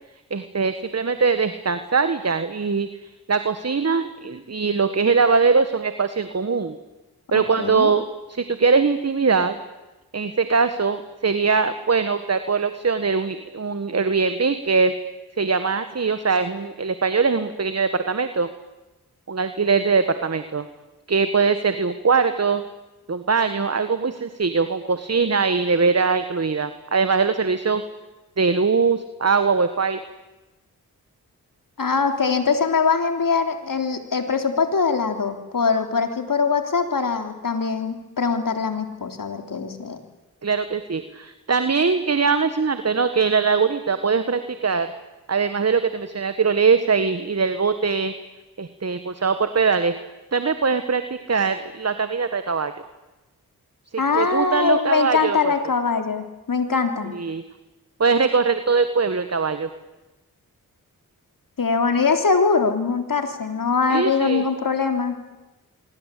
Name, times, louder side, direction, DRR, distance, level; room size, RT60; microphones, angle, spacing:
voice 1, 0.3-2.9 3.3-6.8 7.3-9.6 10.1-14.9 15.4-18.5 19.3-20.6 21.1-22.6 23.1-27.8 28.4-30.0 40.4-44.9 45.3-48.1 48.6-49.9 50.3-52.7 54.1-55.4 57.1-57.4 58.0-59.7 63.9-64.4, right 5 dB, 40° right, 10 dB, 1.7 m, -21 dB
voice 2, 7.3-7.9 31.8-40.0 54.0-57.1 61.6-65.2, left 5 dB, 60° left, 6 dB, 3.5 m, -22 dB
25.0 x 24.5 x 8.6 m, 1.1 s
cardioid pair, 40°, 37 cm